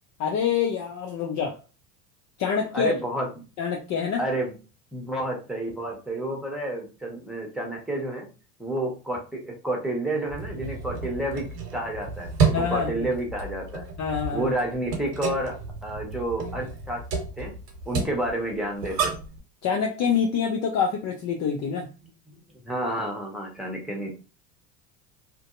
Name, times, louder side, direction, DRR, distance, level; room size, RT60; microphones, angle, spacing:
voice 1, 0.2-1.6 2.4-2.9 3.6-4.2 12.5-13.1 14.0-14.5 19.6-21.9, left 6 dB, 40° left, 1 dB, 0.5 m, -26 dB
voice 2, 2.7-3.3 4.2-4.5 4.9-8.3 8.6-13.8 14.3-17.0 17.4-17.5 17.8-19.1 22.5-24.2, right 1 dB, ahead, -1 dB, 1.1 m, -30 dB
sound 1, 10.3-19.4, right 5 dB, 85° right, 0.8 m, -31 dB
2.5 x 2.2 x 2.5 m, 0.32 s
hypercardioid pair, 75°, 47 cm